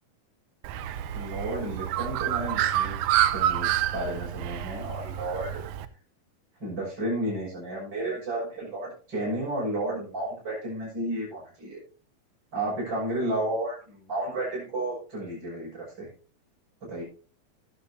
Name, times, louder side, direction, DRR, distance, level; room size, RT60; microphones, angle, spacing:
Bird, 0.6-5.9, right 12 dB, 75° right, 1.9 m, -28 dB
voice 1, 1.1-5.5 6.6-11.8 12.5-16.1 16.8-17.0, right 1 dB, 30° right, -7 dB, 6.9 m, -32 dB
14.0 x 10.5 x 2.8 m, 0.36 s
omnidirectional pair, 3.9 m